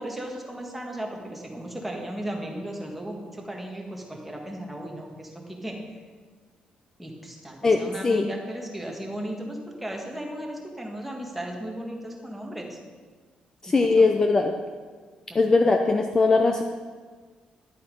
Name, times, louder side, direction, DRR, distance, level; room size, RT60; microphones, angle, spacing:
voice 1, 0.0-5.8 7.0-12.8 13.7-14.1 15.3-15.7, right 1 dB, 5° right, 0 dB, 1.5 m, -36 dB
voice 2, 7.6-8.3 13.6-14.5 15.3-16.6, left 3 dB, 25° left, 4 dB, 0.5 m, -20 dB
11.0 x 8.2 x 5.3 m, 1.5 s
cardioid pair, 155°, 3 cm